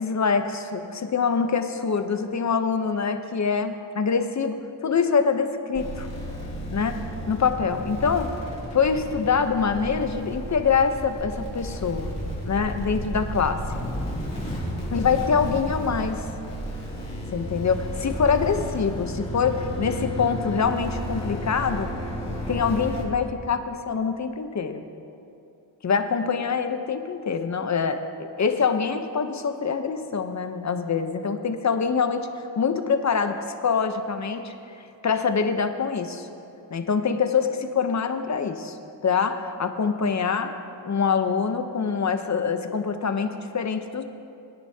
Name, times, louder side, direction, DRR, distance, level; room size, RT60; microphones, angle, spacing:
voice 1, 0.0-6.1 6.7-8.3 8.7-12.1 12.5-13.9 14.9-16.2 17.3-21.9 22.3-24.9 25.8-28.0 28.4-32.3 32.6-33.4 33.6-34.5 35.0-36.3 36.7-38.7 39.0-40.5 40.8-44.0, left 6 dB, 40° left, 7 dB, 0.8 m, -25 dB
sound 1, 5.7-23.0, equal, 15° left, 2.7 m, -32 dB
21.0 x 10.0 x 2.8 m, 2.7 s
cardioid pair, 100°, 44 cm